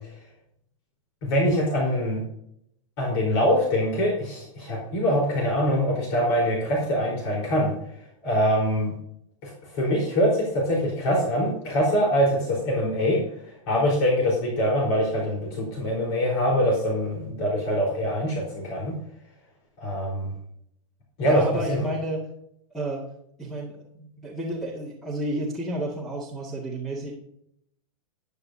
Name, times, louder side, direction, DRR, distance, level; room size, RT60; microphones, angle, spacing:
voice 1, 1.2-2.2 3.0-7.7 8.2-8.9 9.4-13.2 13.7-18.9 19.8-20.3 21.2-21.8, equal, 50° left, -2 dB, 4.3 m, -24 dB
voice 2, 21.2-22.3 22.7-23.0 23.4-27.1, right 1 dB, ahead, -4 dB, 2.0 m, -31 dB
12.5 x 10.0 x 2.8 m, 0.73 s
supercardioid pair, 150°, 18 cm